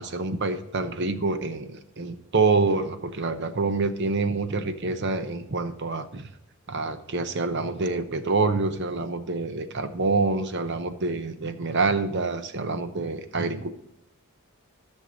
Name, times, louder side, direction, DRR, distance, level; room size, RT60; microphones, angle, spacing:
voice 1, 0.0-6.3 6.7-13.7, right 3 dB, 55° right, 10 dB, 0.8 m, -26 dB
13.5 x 6.5 x 4.0 m, 0.82 s
head